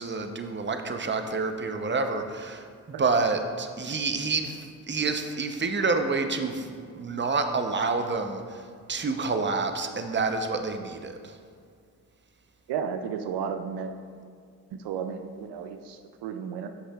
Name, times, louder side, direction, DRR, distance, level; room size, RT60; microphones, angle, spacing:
voice 1, 0.0-2.7 3.0-11.4, right 4 dB, 25° right, 6 dB, 0.7 m, -28 dB
voice 2, 12.7-13.9 14.7-16.7, right 7 dB, 80° right, 7 dB, 0.5 m, -33 dB
9.8 x 6.2 x 2.3 m, 2.1 s
supercardioid pair, 40°, 41 cm